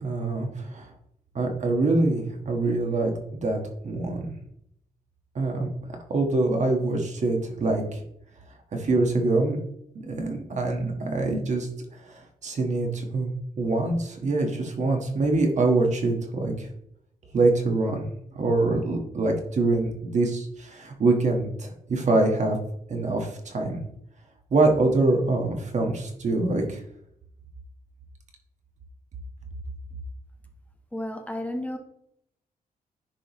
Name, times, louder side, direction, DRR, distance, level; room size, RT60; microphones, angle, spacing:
voice 1, 0.0-0.9 1.3-3.6 3.8-4.3 5.3-5.7 6.1-8.0 8.7-9.6 10.1-11.7 12.0-13.3 13.6-16.7 17.3-18.0 18.3-22.6 22.9-23.8 24.5-26.8, right 2 dB, 50° right, 3 dB, 1.4 m, -24 dB
voice 2, 30.9-31.8, left 1 dB, 10° left, 4 dB, 0.8 m, -32 dB
10.0 x 5.0 x 3.0 m, 0.74 s
wide cardioid pair, 125°, 16 cm